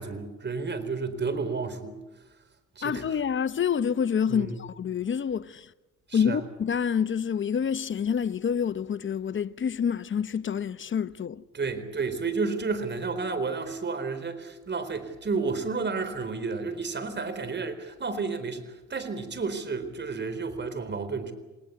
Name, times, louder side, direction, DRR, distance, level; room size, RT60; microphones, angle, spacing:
voice 1, 0.0-2.0 2.8-3.0 4.3-4.6 6.1-6.4 11.5-21.3, right 4 dB, 35° right, 4.1 m, -31 dB
voice 2, 2.8-5.7 6.1-11.4, left 7 dB, 40° left, 0.9 m, -27 dB
29.0 x 19.0 x 8.4 m
cardioid pair, 90°, 30 cm